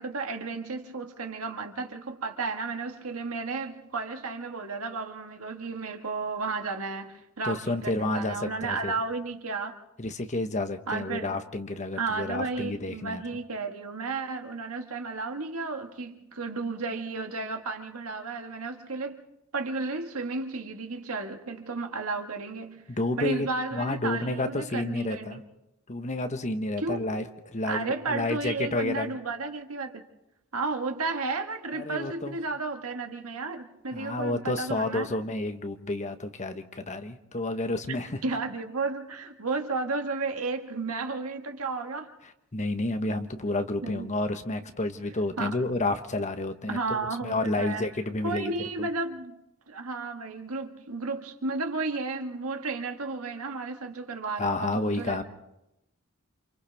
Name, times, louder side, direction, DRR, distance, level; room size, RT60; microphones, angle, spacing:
voice 1, 0.0-9.8 10.9-11.3 11.9-19.3 19.5-22.9 23.2-25.4 26.8-27.1 27.7-30.0 30.5-35.1 38.2-42.1 43.8-44.1 45.4-45.6 46.7-47.9 48.2-49.3 49.7-55.2, right 3 dB, 90° right, 1.6 m, -33 dB
voice 2, 7.4-8.9 10.0-13.2 22.9-25.4 25.9-29.2 31.7-32.4 33.9-38.2 42.5-48.5 48.8-48.9 54.3-55.2, left 2 dB, 35° left, 1.1 m, -30 dB
29.0 x 27.0 x 3.5 m
head